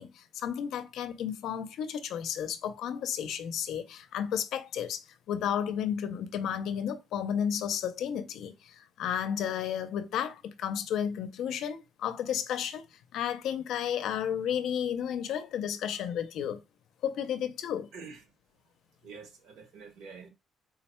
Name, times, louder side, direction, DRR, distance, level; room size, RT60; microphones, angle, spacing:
voice 1, 0.0-12.8 13.1-16.6 17.0-17.9, left 9 dB, 70° left, 0.5 m, -32 dB
voice 2, 17.9-18.3 19.0-20.3, right 5 dB, 75° right, 1.0 m, -48 dB
3.7 x 2.1 x 4.2 m
cardioid pair, 175°, 0 cm